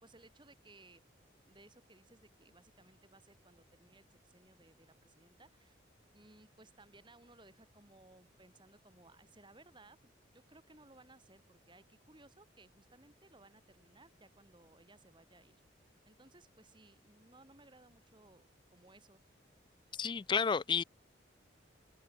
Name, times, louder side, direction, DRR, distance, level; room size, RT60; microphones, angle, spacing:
voice 1, 0.0-1.0 1.5-5.8 6.1-15.6 16.0-19.2, right 2 dB, 25° right, 3.1 m, -62 dB
voice 2, 20.0-20.8, left 6 dB, 25° left, 0.3 m, -31 dB
head